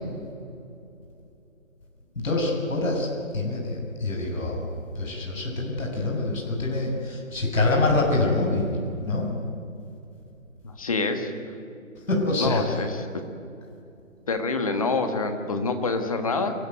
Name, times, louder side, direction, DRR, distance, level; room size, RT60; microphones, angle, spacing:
voice 1, 2.2-3.1 3.3-4.7 5.0-8.7 9.0-9.3 12.1-12.6, left 2 dB, 75° left, 0 dB, 6.9 m, -25 dB
voice 2, 10.6-11.3 12.4-13.1 14.3-16.5, left 3 dB, 25° left, 6 dB, 1.7 m, -26 dB
28.5 x 13.5 x 9.5 m, 2.6 s
hypercardioid pair, 175°, 40 cm